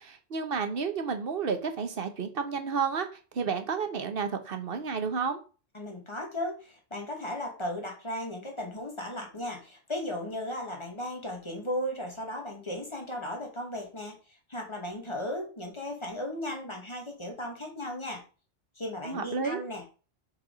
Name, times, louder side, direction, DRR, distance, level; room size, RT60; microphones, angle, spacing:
voice 1, 0.0-3.1 3.3-5.4 19.0-19.6, right 5 dB, 50° right, 8 dB, 1.1 m, -31 dB
voice 2, 5.7-14.2 14.5-18.2 18.8-20.0, left 1 dB, 25° left, 2 dB, 1.8 m, -36 dB
5.7 x 4.8 x 5.0 m, 0.35 s
omnidirectional pair, 1.3 m